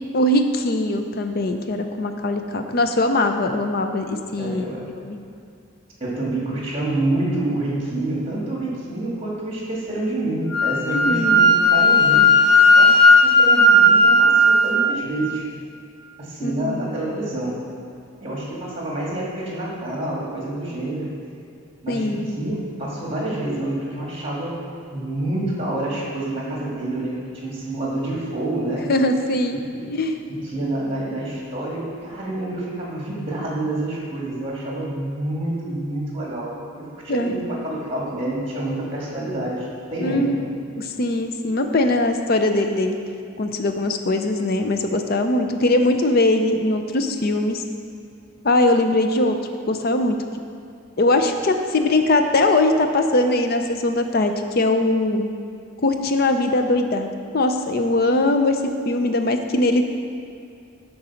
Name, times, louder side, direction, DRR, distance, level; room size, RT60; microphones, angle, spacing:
voice 1, 0.1-4.7 5.0-5.2 10.9-11.5 16.4-16.8 21.9-22.3 28.9-29.6 29.9-30.2 37.1-37.4 40.0-40.5 40.8-43.0 43.4-47.6 48.4-49.4 49.7-50.2 51.0-55.3 55.8-57.1 57.3-58.6 58.9-59.8, left 2 dB, 45° left, 6 dB, 0.5 m, -21 dB
voice 2, 4.4-4.9 6.0-12.3 12.7-15.4 16.2-17.6 18.2-21.1 21.8-24.6 24.9-28.9 29.7-29.9 30.3-40.5, right 1 dB, 25° right, -4 dB, 1.7 m, -28 dB
Wind instrument woodwind instrument, 10.5-14.7, left 1 dB, 30° left, 1.9 m, -14 dB
8.9 x 4.0 x 5.7 m, 2.5 s
head